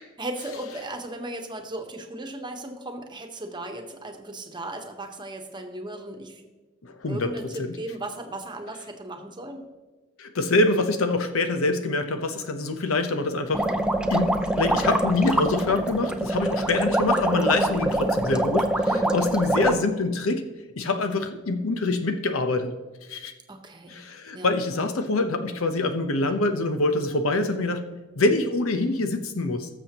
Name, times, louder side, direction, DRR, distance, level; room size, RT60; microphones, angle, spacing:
voice 1, 0.2-6.4 7.1-9.6 18.9-19.3 23.5-24.0 24.3-24.5, right 1 dB, 25° right, 4 dB, 1.1 m, -36 dB
voice 2, 6.8-7.8 10.2-13.6 14.1-18.7 19.1-20.4 20.8-22.7 23.1-23.3 23.9-27.9 28.2-29.7, left 2 dB, 80° left, 8 dB, 0.9 m, -25 dB
sound 1, 13.5-19.8, right 1 dB, 5° right, 0.5 m, -24 dB
19.0 x 7.1 x 3.0 m, 1.2 s
head